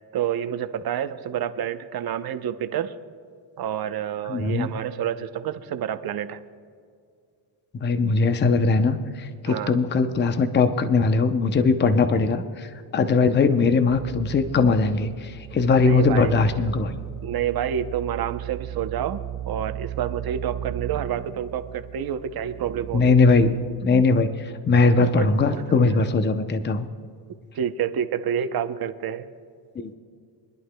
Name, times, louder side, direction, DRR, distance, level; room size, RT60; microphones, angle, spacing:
voice 1, 0.1-2.9 3.6-6.4 9.5-9.8 15.8-16.3 17.2-19.2 19.5-23.2 25.0-25.3 25.5-26.1 27.5-29.3, right 9 dB, 50° right, 9 dB, 0.7 m, -28 dB
voice 2, 4.3-4.7 7.8-17.0 22.9-26.9 29.8-29.9, left 4 dB, 25° left, 9 dB, 0.6 m, -20 dB
sound 1, 13.9-23.8, right 12 dB, 30° right, 0.4 m, -36 dB
25.0 x 11.0 x 2.2 m, 2.2 s
cardioid pair, 110°, 47 cm